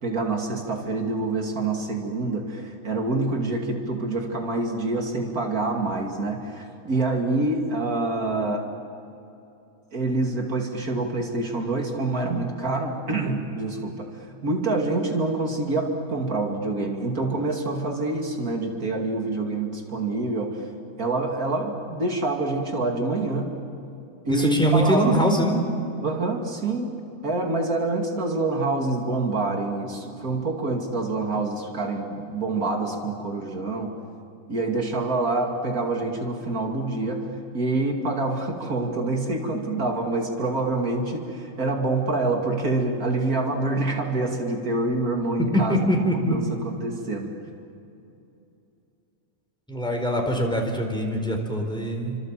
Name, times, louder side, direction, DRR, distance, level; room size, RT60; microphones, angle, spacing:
voice 1, 0.0-8.7 9.9-14.1 14.4-20.6 21.0-23.5 24.2-25.1 26.0-33.9 34.5-37.3 37.5-45.8 46.1-47.3, right 2 dB, 85° right, 2 dB, 3.1 m, -26 dB
voice 2, 24.3-25.6 45.4-46.4 49.7-52.2, right 1 dB, 5° left, 1 dB, 4.3 m, -23 dB
29.0 x 26.0 x 7.6 m, 2.7 s
omnidirectional pair, 1.5 m